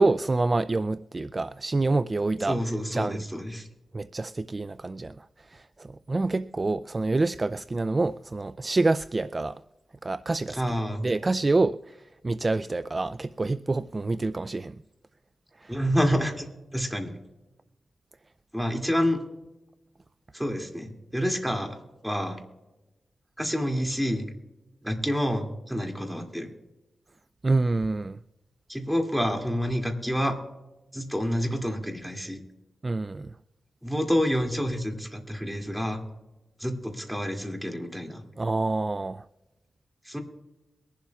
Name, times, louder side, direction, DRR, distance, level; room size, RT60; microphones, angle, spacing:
voice 1, 0.0-2.6 2.9-3.2 3.9-9.6 10.0-10.6 11.0-14.8 15.6-15.7 27.4-28.2 32.8-33.3 38.4-39.3, right 3 dB, 35° right, 0.3 m, -27 dB
voice 2, 2.4-3.7 10.5-11.0 15.7-16.5 16.7-17.1 18.5-19.2 20.3-21.8 22.0-22.4 23.4-24.3 24.8-26.5 28.7-30.4 30.9-32.4 33.8-36.0 36.6-38.2 40.0-40.2, equal, 5° right, 2.5 m, -28 dB
23.0 x 11.5 x 2.4 m
cardioid pair, 75°, 0 cm